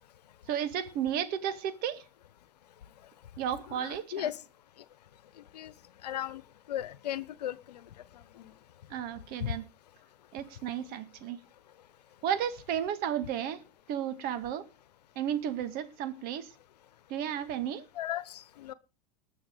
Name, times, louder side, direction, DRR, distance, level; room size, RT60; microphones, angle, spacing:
voice 1, 0.5-2.0 3.4-4.3 8.9-9.7 10.3-11.4 12.2-13.6 13.9-14.7 15.2-16.5 17.1-17.9, right 9 dB, 45° right, 1.8 m, -33 dB
voice 2, 3.7-4.4 5.4-5.7 6.0-6.4 6.7-8.5 9.4-9.5 17.9-18.7, left 11 dB, 75° left, 1.1 m, -37 dB
20.0 x 7.1 x 5.1 m
hypercardioid pair, 100°, 21 cm